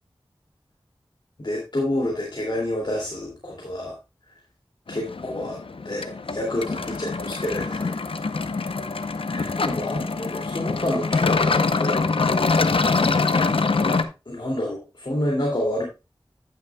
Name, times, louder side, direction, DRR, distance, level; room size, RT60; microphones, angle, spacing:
voice 1, 1.4-3.9 4.9-5.6 5.8-7.9 9.3-12.0 13.8-15.8, left 1 dB, 55° left, -1 dB, 2.5 m, -29 dB
sound 1, 4.9-14.0, left 4 dB, 75° left, 0.7 m, -24 dB
10.5 x 9.3 x 2.3 m, 0.27 s
wide cardioid pair, 40°, 9 cm